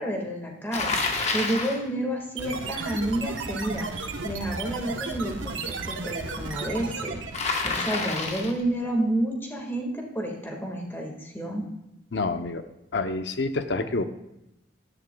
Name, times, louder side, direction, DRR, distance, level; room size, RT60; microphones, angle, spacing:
voice 1, 0.0-3.9 4.2-7.2 7.6-11.6, right 1 dB, 10° left, 0 dB, 1.7 m, -30 dB
Bicycle, 0.7-1.8 7.3-8.6, left 3 dB, 35° left, 1.1 m, -28 dB
sound 1, 2.4-7.5, right 4 dB, 90° right, 1.0 m, -34 dB
voice 2, 12.1-12.6 12.9-14.1, left 3 dB, 65° left, 9 dB, 0.7 m, -27 dB
15.5 x 11.0 x 2.3 m, 0.89 s
head